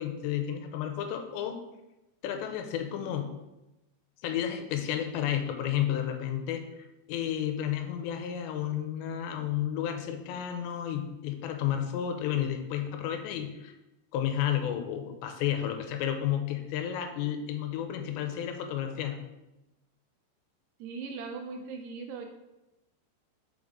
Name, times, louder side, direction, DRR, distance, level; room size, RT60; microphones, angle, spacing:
voice 1, 0.0-1.6 2.2-3.3 4.2-6.7 7.1-13.7 14.1-19.2, left 10 dB, 90° left, 6 dB, 2.9 m, -32 dB
voice 2, 20.8-22.3, right 4 dB, 80° right, 4 dB, 2.6 m, -39 dB
6.3 x 5.2 x 3.6 m, 0.96 s
omnidirectional pair, 5.1 m